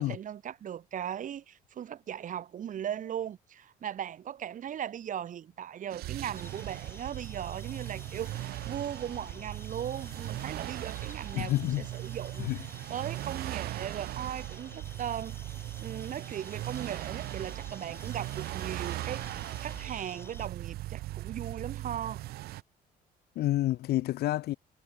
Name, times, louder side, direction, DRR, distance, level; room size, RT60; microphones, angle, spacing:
voice 1, 0.0-12.6 12.9-15.4 15.8-22.2, right 9 dB, 50° right, 1.9 m, -38 dB
sound 1, 5.9-22.6, right 16 dB, 65° right, 0.5 m, -39 dB
sound 2, 6.3-20.5, left 2 dB, 15° left, 8.0 m, -51 dB
voice 2, 11.3-11.9 12.4-12.6 23.3-24.6, left 15 dB, 70° left, 1.2 m, -28 dB
cardioid pair, 110°, 17 cm